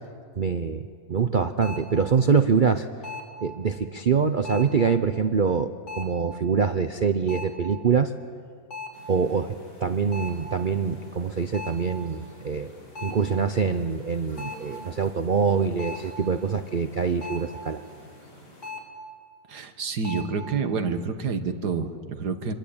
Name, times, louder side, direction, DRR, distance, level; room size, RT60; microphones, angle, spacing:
voice 1, 0.4-2.9 3.4-8.1 9.1-12.7 13.0-17.8, right 5 dB, 45° right, 9 dB, 0.6 m, -24 dB
sound 1, 1.6-2.0 3.0-3.4 4.5-4.9 5.9-6.3 7.3-7.7 8.7-9.1 10.1-10.5 11.5-11.9 13.0-13.3 14.4-14.7 15.8-16.2 17.2-17.6 18.6-19.0 20.0-20.3, left 3 dB, 45° left, 4.1 m, -37 dB
sound 2, 8.9-18.7, equal, 85° left, 7.7 m, -49 dB
voice 2, 19.5-22.5, right 5 dB, 75° right, 8 dB, 2.1 m, -28 dB
26.0 x 22.0 x 8.8 m, 2.2 s
omnidirectional pair, 1.8 m